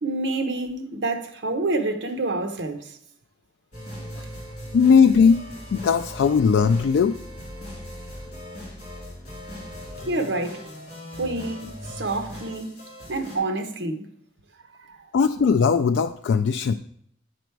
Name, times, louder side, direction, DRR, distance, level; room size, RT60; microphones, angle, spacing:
voice 1, 0.0-3.0 4.2-4.3 10.1-10.6 11.2-12.7 13.1-14.1 14.7-15.1, right 2 dB, 70° right, 0.9 m, -28 dB
sound 1, 3.7-13.4, equal, 40° left, 3.3 m, -39 dB
voice 2, 4.7-5.4 5.7-7.1 15.1-16.7, left 6 dB, 75° left, 0.3 m, -18 dB
9.2 x 5.1 x 4.5 m
head